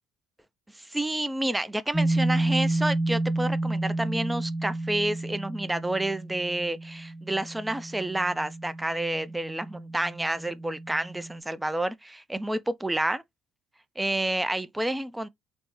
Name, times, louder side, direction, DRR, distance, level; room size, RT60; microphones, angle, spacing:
voice 1, 0.7-13.2 14.0-15.3, right 1 dB, 10° right, 0.3 m, -29 dB
sound 1, 1.9-11.4, right 2 dB, 15° left, 0.7 m, -30 dB
3.1 x 2.0 x 2.9 m
figure-of-eight pair, 50°, 0 cm